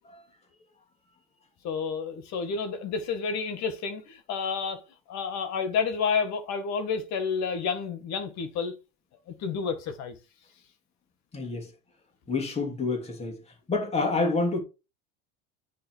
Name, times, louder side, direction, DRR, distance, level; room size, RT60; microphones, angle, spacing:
voice 1, 1.6-4.8 5.1-8.7 9.4-10.2, left 5 dB, 55° left, 2.0 m, -30 dB
voice 2, 11.3-11.7 12.3-13.4 13.7-14.6, left 3 dB, 20° left, 2.8 m, -28 dB
9.3 x 3.7 x 4.7 m
supercardioid pair, 120°, 33 cm